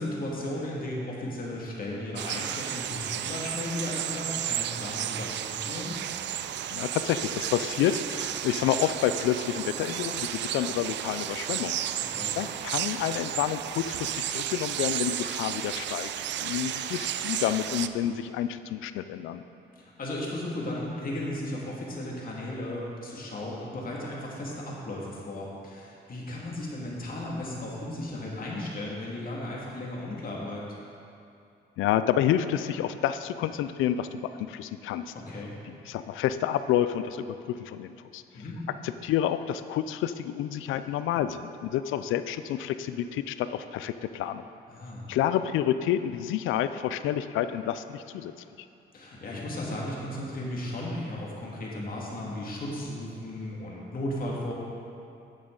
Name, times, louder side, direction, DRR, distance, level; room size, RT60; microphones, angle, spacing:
voice 1, 0.0-6.0 12.0-12.3 19.8-30.6 35.1-35.5 38.3-38.6 44.7-45.0 48.9-54.5, left 1 dB, 45° left, -4 dB, 2.2 m, -35 dB
sound 1, 2.2-17.9, right 11 dB, 65° right, 0.4 m, -33 dB
voice 2, 6.7-11.8 12.4-16.1 16.4-19.4 31.8-35.1 35.7-38.2 38.8-44.4 45.1-48.3, left 11 dB, 85° left, 12 dB, 0.4 m, -29 dB
9.7 x 8.0 x 3.9 m, 2.7 s
cardioid pair, 90°, 20 cm